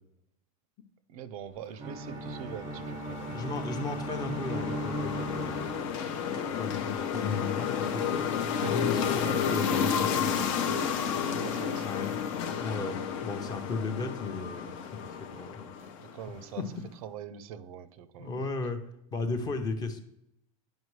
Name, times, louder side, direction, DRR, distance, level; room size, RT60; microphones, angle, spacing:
voice 1, 1.1-3.4 5.5-5.7 8.2-8.4 8.6-8.9 10.6-12.0 16.0-16.7 16.9-18.3, right 8 dB, 75° right, 14 dB, 0.6 m, -43 dB
Bowed string instrument, 1.8-6.2, right 1 dB, 15° right, 0.5 m, -37 dB
sound 1, 2.1-16.5, left 7 dB, 55° left, 0.7 m, -32 dB
voice 2, 3.3-5.7 6.4-8.3 8.6-10.5 11.9-12.1 12.6-15.7 16.6-16.7 18.2-18.8 19.1-20.0, left 4 dB, 20° left, 7 dB, 0.6 m, -35 dB
sound 2, 5.3-11.3, left 4 dB, 85° left, 1.6 m, -54 dB
9.3 x 5.2 x 3.2 m, 0.79 s
supercardioid pair, 150°, 19 cm